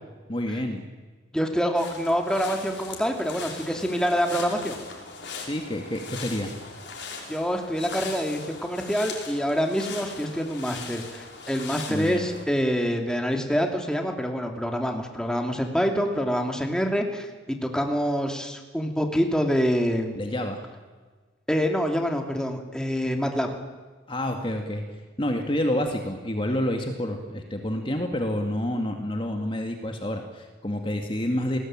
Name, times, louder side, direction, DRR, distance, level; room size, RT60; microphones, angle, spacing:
voice 1, 0.3-0.9 5.4-6.5 11.9-12.3 20.2-20.6 24.1-24.8 25.2-31.6, left 1 dB, 25° left, 4 dB, 2.2 m, -28 dB
voice 2, 1.3-4.8 7.3-20.2 21.5-23.5, equal, 5° left, 3 dB, 2.8 m, -26 dB
sound 1, 1.8-12.4, left 4 dB, 60° left, 5.4 m, -40 dB
30.0 x 20.0 x 9.0 m, 1.4 s
head